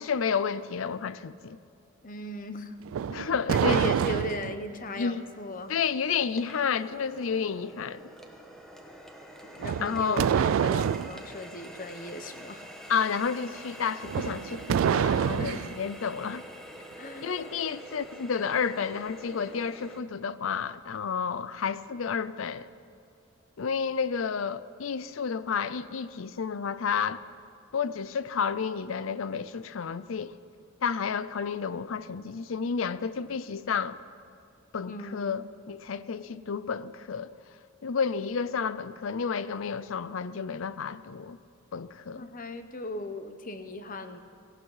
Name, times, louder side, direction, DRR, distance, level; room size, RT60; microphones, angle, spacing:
voice 1, 0.0-1.6 3.1-3.9 5.0-5.2 5.7-8.0 9.8-10.3 12.9-16.4 17.2-22.7 23.6-27.2 27.7-30.3 30.8-34.0 34.7-37.3 37.8-41.4 41.7-42.3, left 6 dB, 70° left, 0.5 m, -31 dB
voice 2, 2.0-2.8 3.5-5.7 9.4-12.7 15.4-15.7 17.0-17.3 34.9-35.4 42.1-44.2, left 1 dB, 40° left, 0.9 m, -37 dB
sound 1, 2.9-4.6 9.6-11.2 14.0-15.8, right 8 dB, 75° right, 0.3 m, -27 dB
Water tap faucet, 4.6-20.0, equal, ahead, 1.2 m, -47 dB
18.0 x 16.0 x 4.9 m
head